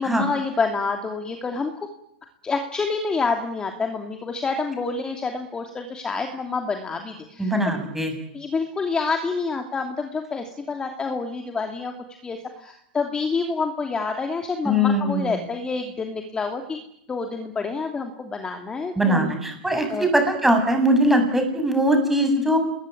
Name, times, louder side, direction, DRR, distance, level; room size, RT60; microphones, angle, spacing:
voice 1, 0.0-1.7 2.4-7.5 8.3-11.9 12.2-16.8 17.1-19.3 19.9-20.1, left 4 dB, 15° left, 5 dB, 2.8 m, -28 dB
voice 2, 7.4-8.1 14.6-15.3 19.0-22.6, equal, 5° right, 5 dB, 7.1 m, -21 dB
28.0 x 21.0 x 9.3 m, 0.76 s
supercardioid pair, 135°, 5 cm